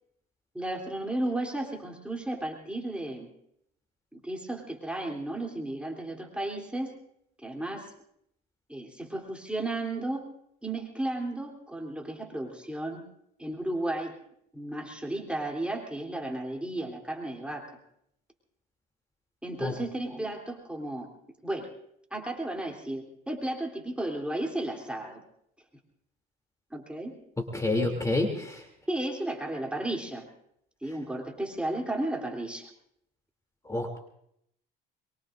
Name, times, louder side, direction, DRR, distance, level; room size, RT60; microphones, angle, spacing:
voice 1, 0.5-3.3 4.1-6.9 7.4-7.9 8.7-10.2 10.6-13.0 13.4-14.1 14.5-17.6 19.4-21.1 21.4-21.7 22.1-25.2 26.7-27.1 28.9-30.3 30.8-32.7, right 1 dB, 5° right, 0 dB, 3.3 m, -34 dB
voice 2, 27.5-28.6 33.7-34.0, left 2 dB, 15° left, 3 dB, 2.9 m, -28 dB
23.5 x 23.0 x 2.6 m, 0.74 s
supercardioid pair, 90°, 20 cm